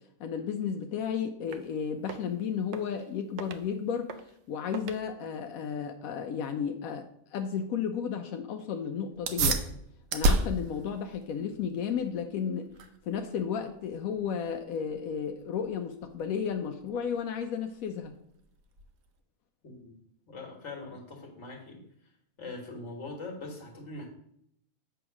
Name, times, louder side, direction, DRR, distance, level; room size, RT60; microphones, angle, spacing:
voice 1, 0.2-9.6 10.1-12.7 13.1-18.1, left 7 dB, 90° left, 5 dB, 1.0 m, -33 dB
sound 1, 1.5-1.7 2.0-2.3 2.7-3.1 3.4-3.7 4.1-4.4 4.7-5.0, right 6 dB, 65° right, 0.8 m, -43 dB
sound 2, 9.1-19.2, right 2 dB, 90° right, 1.2 m, -34 dB
voice 2, 19.6-19.9 20.3-21.8 22.4-24.1, left 2 dB, 55° left, 1 dB, 1.8 m, -42 dB
7.9 x 3.6 x 5.9 m, 0.71 s
omnidirectional pair, 1.4 m